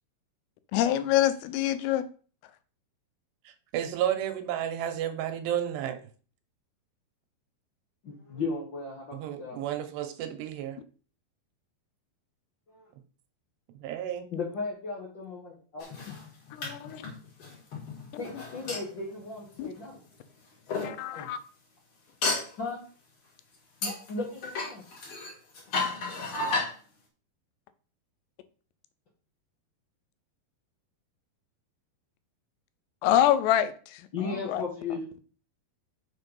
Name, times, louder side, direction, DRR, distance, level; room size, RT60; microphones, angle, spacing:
voice 1, 0.7-2.1 16.5-17.1 19.6-19.7 20.8-21.4 33.0-35.0, left 12 dB, 90° left, 2.9 m, -26 dB
voice 2, 3.7-6.0 9.1-10.8 13.8-14.3, right 10 dB, 85° right, 3.0 m, -31 dB
voice 3, 8.0-9.6 14.3-15.8 18.2-20.0 21.1-21.3 22.6-22.8 23.8-24.8 34.1-35.0, left 4 dB, 70° left, 1.1 m, -36 dB
sound 1, 15.8-20.1 20.7-20.9 22.2-22.5 23.8-26.7, left 3 dB, 45° left, 2.0 m, -33 dB
6.4 x 4.7 x 5.3 m
omnidirectional pair, 4.8 m